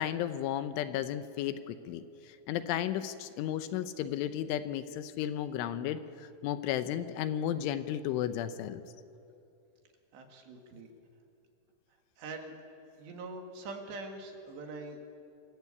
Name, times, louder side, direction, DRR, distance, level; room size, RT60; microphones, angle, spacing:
voice 1, 0.0-8.8, left 11 dB, 80° left, 11 dB, 3.2 m, -34 dB
voice 2, 10.1-10.9 12.2-12.6 13.0-15.0, right 3 dB, 65° right, 3 dB, 4.1 m, -43 dB
27.0 x 21.5 x 8.4 m, 2.7 s
omnidirectional pair, 5.8 m